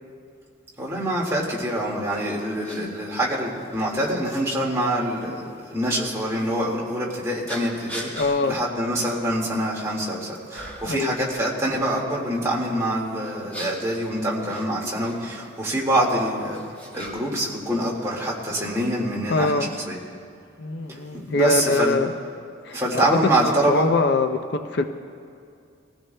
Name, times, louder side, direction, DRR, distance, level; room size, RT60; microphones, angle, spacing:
voice 1, 0.8-20.0 20.9-22.0 22.7-23.9, right 1 dB, 15° right, -4 dB, 1.8 m, -25 dB
sound 1, 2.1-2.2 2.6-2.8 3.7-3.8 5.8-6.0 7.5-8.3 8.9-9.1 9.5-10.1 10.5-11.0 13.2-15.2 16.1-17.4 17.7-18.5, right 1 dB, 10° left, 2.2 m, -38 dB
voice 2, 8.2-8.6 10.8-11.1 19.3-19.7 20.6-22.1 22.6-23.0 23.4-24.9, left 3 dB, 55° left, 7 dB, 0.5 m, -23 dB
21.5 x 15.5 x 2.2 m, 2.4 s
head